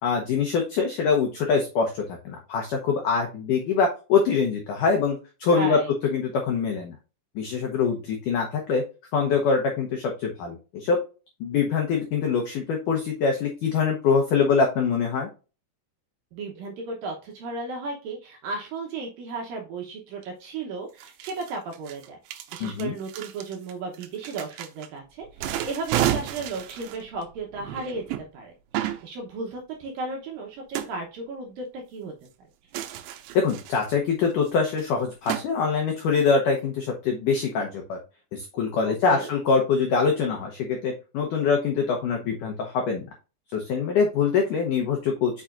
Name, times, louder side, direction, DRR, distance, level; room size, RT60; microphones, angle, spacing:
voice 1, 0.0-6.9 7.4-8.8 9.1-11.0 11.4-15.3 22.6-23.0 33.3-38.0 38.3-43.1 43.5-45.4, left 5 dB, 90° left, 2 dB, 1.8 m, -24 dB
voice 2, 5.5-5.9 16.3-22.2 22.5-28.0 28.3-32.1 38.8-39.3, right 3 dB, 70° right, 1 dB, 2.2 m, -35 dB
sound 1, 20.2-20.3 21.0-24.9 25.3-28.2 28.7-29.0 30.7-30.9 32.7-34.0 34.5-34.6 34.8-34.9 35.3-35.4, right 12 dB, 90° right, 3.0 m, -31 dB
7.3 x 5.7 x 2.5 m, 0.32 s
omnidirectional pair, 5.2 m